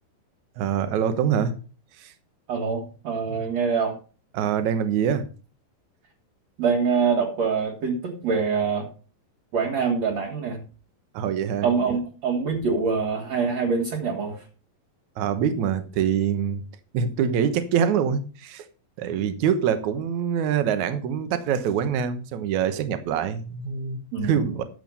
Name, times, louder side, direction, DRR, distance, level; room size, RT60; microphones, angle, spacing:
voice 1, 0.6-1.6 2.0-2.1 3.3-3.4 4.3-5.3 11.1-12.0 15.2-16.6 16.9-18.7 19.0-24.6, right 8 dB, 70° right, 1.8 m, -25 dB
voice 2, 2.5-4.0 6.6-8.9 9.5-10.6 11.6-14.4 24.1-24.6, right 5 dB, 50° right, 2.3 m, -25 dB
11.5 x 7.7 x 5.4 m
omnidirectional pair, 4.9 m